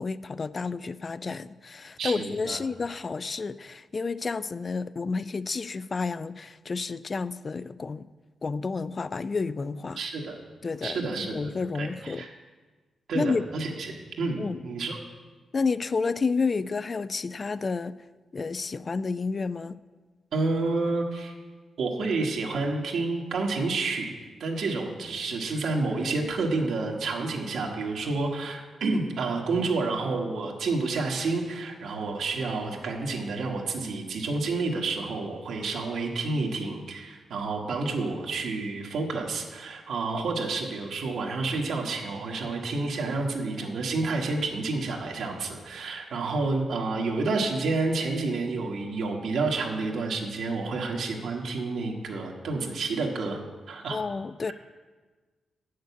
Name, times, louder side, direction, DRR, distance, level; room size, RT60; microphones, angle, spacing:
voice 1, 0.0-8.1 8.4-10.0 10.6-12.2 13.1-13.4 14.4-14.6 15.5-17.9 18.3-19.8 53.9-54.5, left 4 dB, 35° left, 16 dB, 0.3 m, -30 dB
voice 2, 2.0-2.6 10.0-10.4 10.8-12.3 13.1-15.0 20.3-21.3 21.8-53.4 53.7-54.0, right 3 dB, 80° right, 1 dB, 1.4 m, -29 dB
8.2 x 6.5 x 8.1 m, 1.4 s
wide cardioid pair, 115°, 0 cm